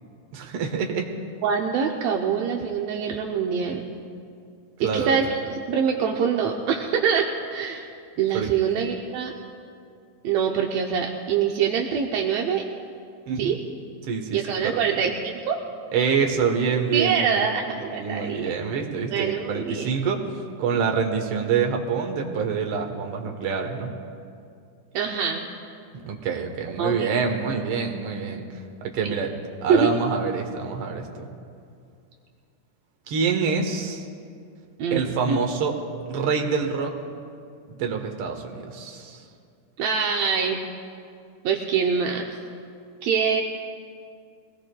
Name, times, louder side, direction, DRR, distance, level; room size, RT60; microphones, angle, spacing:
voice 1, 0.3-1.1 4.8-5.2 8.3-8.5 8.8-8.9 13.3-13.6 14.1-14.8 15.9-20.2 20.6-23.9 25.9-28.5 28.8-29.3 29.6-31.3 33.1-34.1 34.9-35.8 36.1-36.9 37.7-39.2, right 5 dB, 60° right, 2 dB, 1.6 m, -26 dB
voice 2, 1.4-3.9 4.8-7.9 8.2-9.3 10.2-12.6 13.4-13.6 14.3-15.6 16.9-18.4 19.1-19.9 24.9-25.4 26.8-27.1 29.7-29.9 34.8-35.4 39.8-40.7 41.4-42.4 43.0-43.4, right 6 dB, 80° right, 1 dB, 1.5 m, -24 dB
23.0 x 18.0 x 2.2 m, 2.4 s
omnidirectional pair, 3.8 m